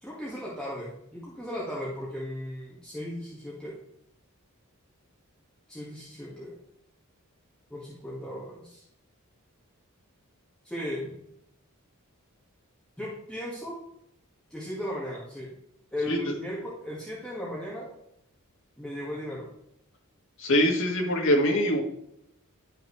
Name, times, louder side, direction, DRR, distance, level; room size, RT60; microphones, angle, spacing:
voice 1, 0.0-3.7 5.7-6.5 7.7-8.8 10.6-11.1 13.0-13.7 14.5-15.5 15.9-17.9 18.8-19.5, left 1 dB, 5° left, -7 dB, 1.9 m, -36 dB
voice 2, 20.4-21.8, equal, 60° left, -1 dB, 2.0 m, -23 dB
12.0 x 5.7 x 3.3 m, 0.77 s
head